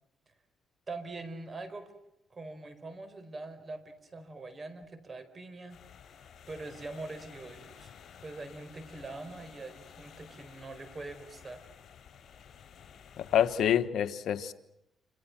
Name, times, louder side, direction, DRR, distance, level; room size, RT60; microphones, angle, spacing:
voice 1, 0.9-1.9 2.3-5.8 6.5-7.9 8.2-11.6, right 3 dB, 30° right, 12 dB, 4.5 m, -43 dB
sound 1, 5.7-13.7, left 7 dB, 55° left, 5.5 m, -53 dB
voice 2, 13.2-14.5, left 10 dB, 75° left, 11 dB, 1.3 m, -27 dB
28.0 x 27.0 x 6.0 m, 0.83 s
cardioid pair, 90°, 0 cm